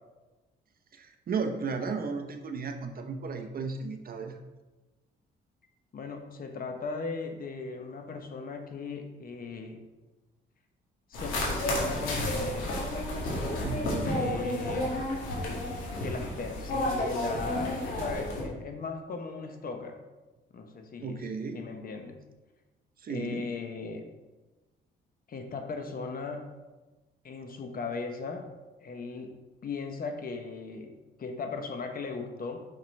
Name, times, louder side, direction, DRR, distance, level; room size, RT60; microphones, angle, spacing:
voice 1, 0.9-4.4 13.6-14.3 21.0-21.6 23.0-23.5, right 4 dB, 50° right, 6 dB, 0.8 m, -34 dB
voice 2, 5.9-9.8 11.1-12.7 14.0-15.0 16.0-20.0 20.5-22.2 23.1-24.1 25.3-26.5 27.2-28.5 28.8-29.3 29.6-32.7, left 4 dB, 45° left, 5 dB, 1.0 m, -38 dB
sound 1, 11.1-18.4, left 1 dB, 90° left, 2.2 m, -31 dB
6.6 x 5.8 x 3.3 m, 1.2 s
cardioid pair, 90°, 20 cm